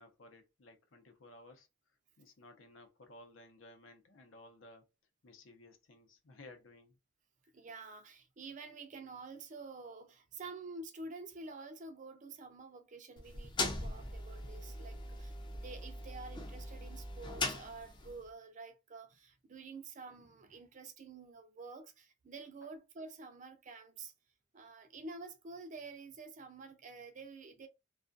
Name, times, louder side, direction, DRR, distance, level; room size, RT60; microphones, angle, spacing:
voice 1, 0.0-1.7 2.2-4.8 5.2-7.0 22.6-22.7, left 2 dB, 85° left, 0.7 m, -57 dB
voice 2, 7.5-24.1 24.5-27.7, right 3 dB, 40° right, 0.4 m, -49 dB
sound 1, 13.2-18.2, left 2 dB, 25° left, 0.5 m, -40 dB
2.3 x 2.3 x 2.5 m
head